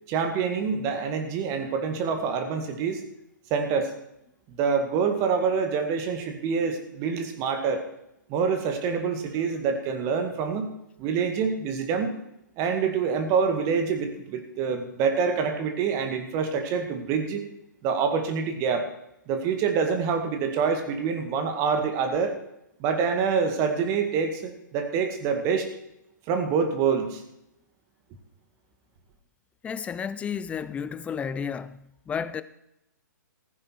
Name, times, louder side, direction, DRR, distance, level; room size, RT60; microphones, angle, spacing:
voice 1, 0.1-3.0 3.5-3.9 4.6-7.8 8.3-10.7 11.0-12.1 12.6-17.4 17.8-18.9 19.3-22.3 22.8-25.7 26.3-27.2, right 6 dB, 30° right, 2.0 m, -26 dB
voice 2, 29.6-32.4, left 7 dB, 10° left, 0.6 m, -32 dB
15.0 x 9.8 x 4.6 m
hypercardioid pair, 130°, 10 cm